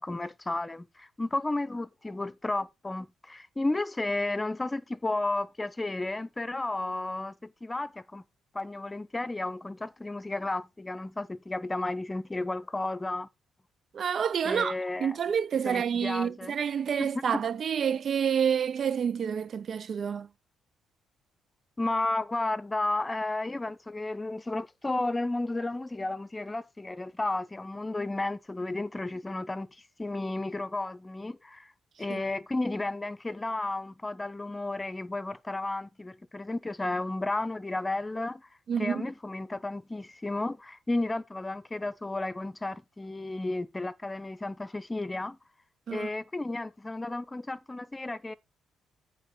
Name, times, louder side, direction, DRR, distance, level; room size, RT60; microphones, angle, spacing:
voice 1, 0.0-8.2 8.5-13.3 14.4-15.2 15.6-16.5 17.0-17.4 21.8-29.7 30.0-31.7 32.0-38.5 38.8-45.4 45.9-48.3, left 2 dB, 20° left, 0.9 m, -33 dB
voice 2, 13.9-20.3 32.1-32.2 38.7-39.0 45.9-46.1, right 7 dB, 55° right, 0.5 m, -28 dB
9.2 x 3.9 x 6.8 m
cardioid pair, 90°, 0 cm